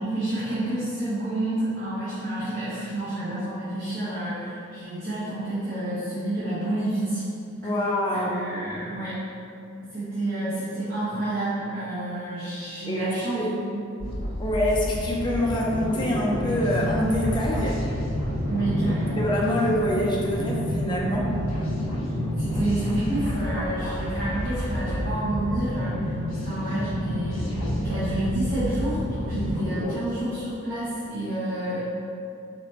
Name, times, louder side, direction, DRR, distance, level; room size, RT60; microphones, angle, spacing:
voice 1, 0.0-7.2 8.1-9.2 9.8-13.4 13.7-13.8 18.4-19.2 20.3-20.5 22.4-26.1 26.4-32.0, right 1 dB, 45° right, -14 dB, 1.3 m, -29 dB
voice 2, 7.6-8.5 12.9-13.5 14.4-17.8 19.2-21.4, left 1 dB, 25° left, -3 dB, 0.6 m, -25 dB
sound 1, 14.0-30.0, equal, 80° left, 1.2 m, -29 dB
4.8 x 3.4 x 3.0 m, 2.5 s
head